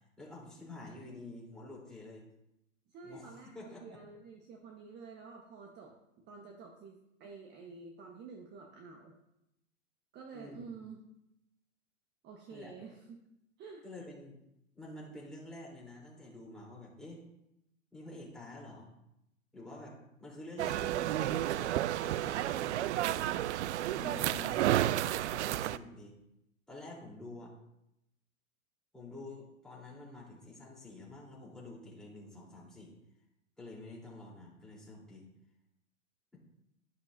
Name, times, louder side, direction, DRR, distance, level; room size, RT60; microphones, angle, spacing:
voice 1, 0.2-2.2 3.0-4.0 10.3-10.7 12.5-12.9 13.8-14.4 14.8-17.2 17.9-18.9 19.5-23.7 23.9-26.2 26.7-27.5 28.9-32.9 33.6-35.3, left 2 dB, ahead, -5 dB, 3.6 m, -49 dB
voice 2, 2.9-9.1 10.1-11.0 12.2-13.2 13.6-13.8, right 4 dB, 25° right, 2 dB, 1.3 m, -50 dB
sound 1, 20.6-25.8, right 13 dB, 60° right, 0.5 m, -31 dB
11.5 x 11.0 x 2.7 m, 0.84 s
hypercardioid pair, 110°, 39 cm